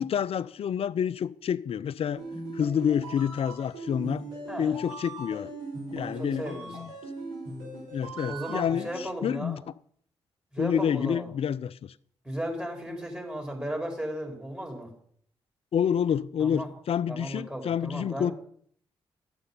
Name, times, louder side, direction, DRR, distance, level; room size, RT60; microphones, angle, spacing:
voice 1, 0.0-2.2 2.5-4.2 4.6-5.5 5.9-6.9 7.9-9.6 10.6-11.9 15.7-18.3, left 8 dB, 60° left, 0.5 m, -28 dB
sound 1, 2.2-9.0, right 2 dB, 85° right, 4.4 m, -39 dB
voice 2, 6.0-6.9 8.3-9.6 10.5-11.3 12.2-14.9 16.4-16.7 17.1-18.3, equal, 10° right, 4.6 m, -35 dB
11.5 x 7.8 x 5.6 m
hypercardioid pair, 40°, 12 cm